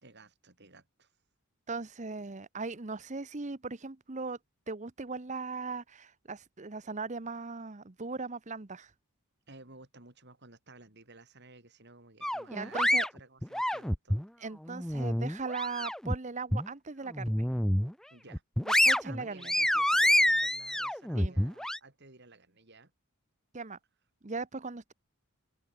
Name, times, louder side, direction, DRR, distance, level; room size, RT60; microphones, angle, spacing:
voice 1, 0.0-1.1 9.5-14.2 18.1-18.4 19.0-22.9, right 3 dB, 50° right, 4.5 m, -55 dB
voice 2, 1.7-4.4 4.7-8.9 12.5-13.1 14.4-17.5 18.8-19.5 21.1-21.4 23.5-23.8 24.2-24.9, right 4 dB, 35° right, 0.9 m, -38 dB
sound 1, 12.2-14.3 14.7-16.2 16.5-16.7 17.1-17.9 18.3-21.8, left 1 dB, ahead, 0.5 m, -27 dB
open air
head